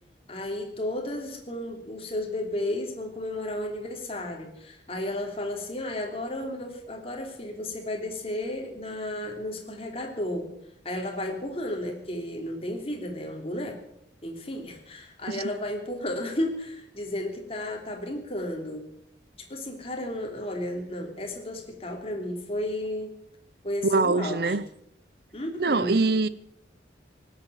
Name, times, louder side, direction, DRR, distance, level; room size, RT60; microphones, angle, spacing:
voice 1, 0.3-10.5 10.8-13.8 14.2-18.9 19.4-23.2 23.6-24.6 25.3-26.1, left 1 dB, 30° left, 3.1 m, -33 dB
voice 2, 23.8-24.6 25.6-26.3, right 3 dB, 55° right, 0.8 m, -23 dB
19.0 x 8.4 x 9.1 m
head